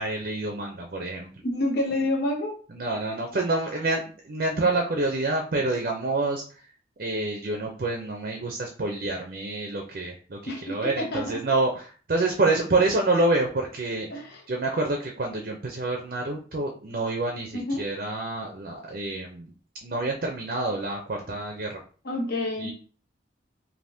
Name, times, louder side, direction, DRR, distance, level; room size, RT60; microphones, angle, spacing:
voice 1, 0.0-1.3 2.7-6.7 7.0-14.1 14.5-19.5 19.8-21.8 22.6-22.7, right 2 dB, 45° right, 2 dB, 0.5 m, -27 dB
voice 2, 1.4-2.6 10.5-11.4 12.4-12.5 14.1-14.4 17.5-17.9 22.0-22.7, left 1 dB, 55° left, 0 dB, 0.8 m, -28 dB
3.4 x 2.6 x 2.6 m, 0.40 s
head